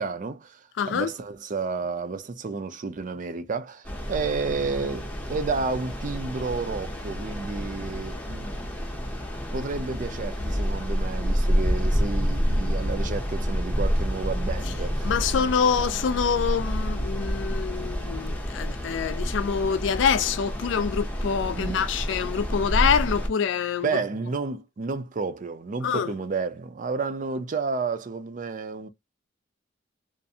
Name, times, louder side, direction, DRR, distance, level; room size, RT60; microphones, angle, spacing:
voice 1, 0.0-8.6 9.5-15.1 21.5-21.8 23.8-28.9, right 4 dB, 45° right, 0.4 m, -31 dB
voice 2, 0.8-1.1 15.0-23.9 25.8-26.1, left 6 dB, 75° left, 0.3 m, -25 dB
sound 1, 3.8-23.3, equal, 10° left, 0.6 m, -28 dB
2.5 x 2.0 x 2.6 m
head